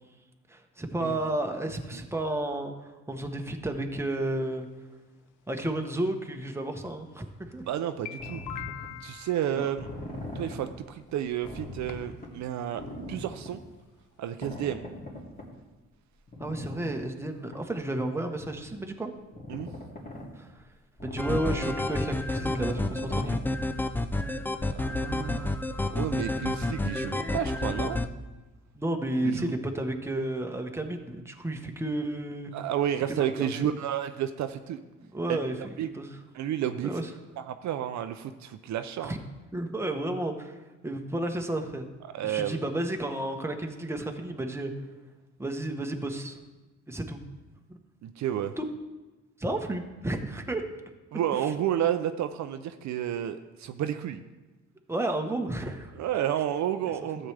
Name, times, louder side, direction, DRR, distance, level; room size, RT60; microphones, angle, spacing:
voice 1, 0.5-4.7 5.5-7.7 9.5-9.7 16.4-19.1 20.3-20.6 21.0-23.4 28.7-32.5 33.2-33.7 35.1-35.6 35.9-36.2 36.8-37.1 39.0-39.2 39.5-40.6 40.8-41.9 42.2-44.7 45.4-46.4 46.9-47.2 47.7-47.8 48.6-48.7 49.4-50.6 51.3-51.5 54.9-55.9 57.2-57.3, right 1 dB, 10° right, 4 dB, 1.0 m, -32 dB
sound 1, 4.5-4.6 5.6-5.7 6.8-6.9 7.5-7.6 7.9-9.9 11.0-11.1 11.5-11.6 11.9-12.3 12.6-12.7 12.9-13.0 13.3-13.4, left 10 dB, 85° left, 0.7 m, -42 dB
voice 2, 7.7-8.4 9.0-9.9 10.3-12.8 13.1-13.6 14.2-14.8 19.5-19.7 24.7-28.0 29.2-29.5 32.5-34.8 35.3-35.4 35.8-35.9 36.3-36.9 37.4-39.1 42.1-42.6 48.0-48.5 51.1-54.2 56.0-57.3, right 10 dB, 65° right, 9 dB, 0.5 m, -31 dB
sound 2, 8.2-8.9 9.8-10.6 11.1-11.2 11.4-12.3 12.7-13.5 14.4-15.5 16.3-17.0 17.5-17.6 18.3-18.7 19.3-20.3 21.0-22.0 22.3-23.4 23.8-23.9 24.1-24.2, left 1 dB, 30° left, 2.6 m, -40 dB
sound 3, 21.2-28.1, left 2 dB, 5° left, 0.4 m, -30 dB
12.5 x 7.7 x 3.3 m, 1.2 s
cardioid pair, 90°, 30 cm